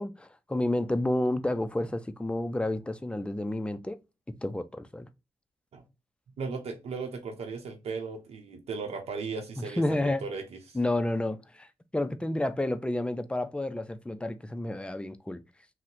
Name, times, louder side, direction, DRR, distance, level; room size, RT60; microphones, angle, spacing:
voice 1, 0.0-4.0 4.4-5.1 9.6-10.2 10.7-11.7 11.9-15.4, left 1 dB, 10° left, 0.4 m, -30 dB
voice 2, 6.4-10.8, right 4 dB, 75° right, 0.7 m, -37 dB
2.7 x 2.1 x 3.8 m
cardioid pair, 65°, 10 cm